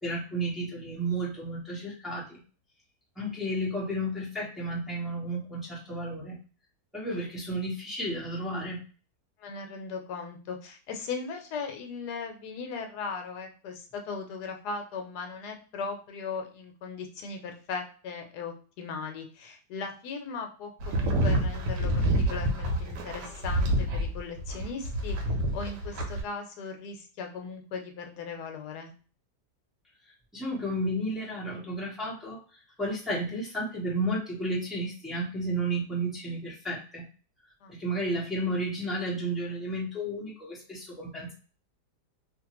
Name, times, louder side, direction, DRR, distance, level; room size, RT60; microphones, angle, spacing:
voice 1, 0.0-2.4 3.2-6.3 6.9-8.8 30.3-32.4 32.8-37.0 37.7-41.3, right 1 dB, ahead, -6 dB, 0.6 m, -32 dB
voice 2, 9.4-25.2 25.5-28.9 37.6-37.8, left 5 dB, 70° left, 4 dB, 1.2 m, -38 dB
sound 1, 20.8-26.2, right 1 dB, 80° right, 1.3 m, -28 dB
2.8 x 2.5 x 3.0 m, 0.38 s
omnidirectional pair, 1.8 m